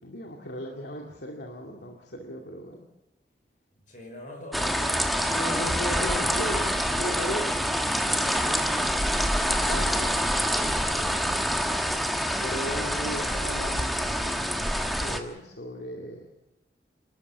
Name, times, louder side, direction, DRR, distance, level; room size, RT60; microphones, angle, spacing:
voice 1, 0.0-2.8 5.3-6.7 7.0-7.5 9.5-10.2 12.4-16.3, equal, 75° left, 0 dB, 2.3 m, -36 dB
voice 2, 3.9-5.8 6.3-9.2 10.6-11.2, left 1 dB, 50° left, 1 dB, 5.8 m, -45 dB
sound 1, 4.5-15.2, equal, ahead, 1.4 m, -26 dB
28.0 x 13.0 x 7.3 m, 0.97 s
head